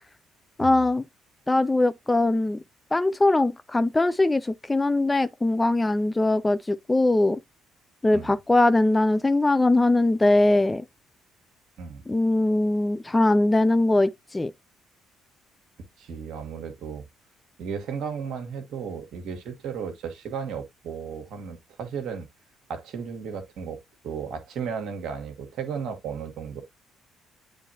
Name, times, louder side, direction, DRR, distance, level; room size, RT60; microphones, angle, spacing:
voice 1, 0.6-1.0 1.5-2.6 2.9-7.4 8.0-10.8 12.1-14.5, left 2 dB, 15° left, 0.4 m, -21 dB
voice 2, 16.0-17.0 17.6-22.3 22.7-26.6, right 6 dB, 55° right, 1.4 m, -34 dB
9.8 x 3.5 x 2.8 m
figure-of-eight pair, 45°, 0 cm